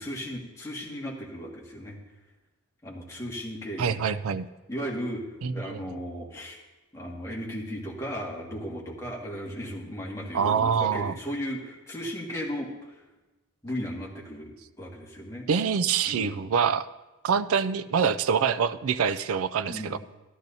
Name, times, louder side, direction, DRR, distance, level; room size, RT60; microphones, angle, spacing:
voice 1, 0.0-2.0 2.8-4.0 4.7-5.3 5.5-6.6 6.9-12.7 13.6-15.5 16.1-16.5 19.7-20.0, equal, 15° left, -4 dB, 1.8 m, -36 dB
voice 2, 3.8-4.5 5.4-6.0 10.3-11.1 15.5-16.9 17.2-20.0, right 6 dB, 80° right, 12 dB, 0.4 m, -25 dB
13.5 x 12.0 x 2.7 m, 1.1 s
head